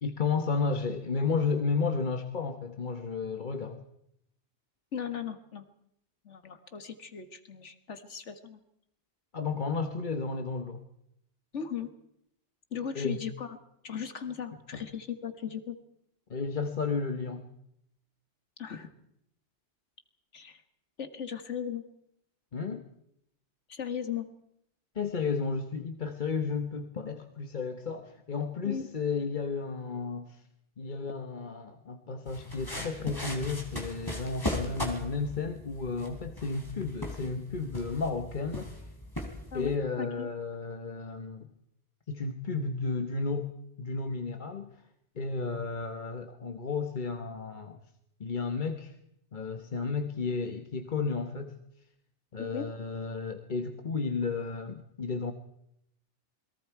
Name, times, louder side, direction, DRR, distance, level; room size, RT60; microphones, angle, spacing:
voice 1, 0.0-3.8 9.3-10.8 12.9-13.2 14.7-14.8 16.3-17.4 22.5-22.8 24.9-30.4 30.8-38.7 39.5-41.5 42.1-44.7 45.2-47.8 48.2-48.9 49.3-51.6 52.3-55.3, left 4 dB, 45° left, 7 dB, 1.3 m, -33 dB
voice 2, 4.9-5.7 6.3-8.6 11.5-11.9 12.7-13.6 13.8-15.8 18.6-18.9 20.3-20.6 21.0-21.8 23.7-24.3 28.7-28.9 39.5-39.7 40.0-40.3 52.4-52.7, left 8 dB, 85° left, 9 dB, 1.8 m, -37 dB
sound 1, 32.3-39.8, left 1 dB, 20° left, 3.7 m, -38 dB
28.0 x 22.0 x 4.7 m, 0.77 s
omnidirectional pair, 1.2 m